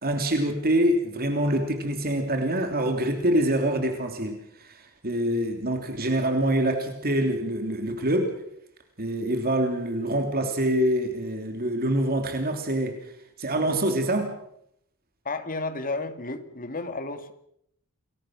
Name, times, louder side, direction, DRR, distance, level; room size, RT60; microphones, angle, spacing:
voice 1, 0.0-8.4 9.0-12.9 13.4-14.3, right 1 dB, 45° right, 3.0 m, -25 dB
voice 2, 15.2-17.3, left 3 dB, 40° left, 2.3 m, -32 dB
29.0 x 21.5 x 6.3 m
head